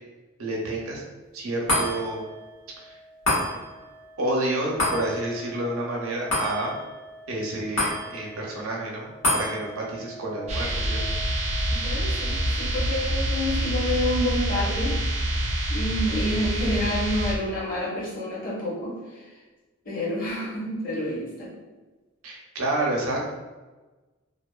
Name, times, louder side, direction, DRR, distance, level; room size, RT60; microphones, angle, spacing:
voice 1, 0.4-1.0 1.3-2.2 2.8-3.0 4.2-6.7 7.3-11.1 22.2-23.3, right 1 dB, 80° right, -2 dB, 0.6 m, -29 dB
sound 1, 1.7-14.3 14.7-14.8, left 1 dB, 90° left, 1.3 m, -32 dB
sound 2, 10.5-17.3, right 1 dB, 30° right, 0.4 m, -26 dB
voice 2, 11.7-15.0 15.4-19.2 19.8-21.5, left 1 dB, 40° left, -7 dB, 0.8 m, -29 dB
2.7 x 2.1 x 2.3 m, 1.2 s
head